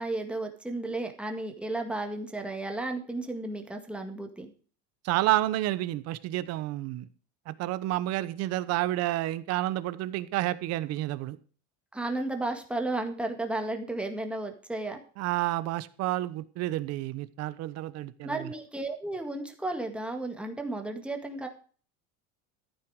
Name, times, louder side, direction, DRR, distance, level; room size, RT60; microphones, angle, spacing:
voice 1, 0.0-4.5 11.9-15.0 18.2-21.5, right 2 dB, 5° right, 1.8 m, -33 dB
voice 2, 5.0-7.1 7.5-11.4 15.2-18.5, right 15 dB, 50° right, 1.0 m, -30 dB
14.0 x 9.2 x 4.8 m
cardioid pair, 155°, 34 cm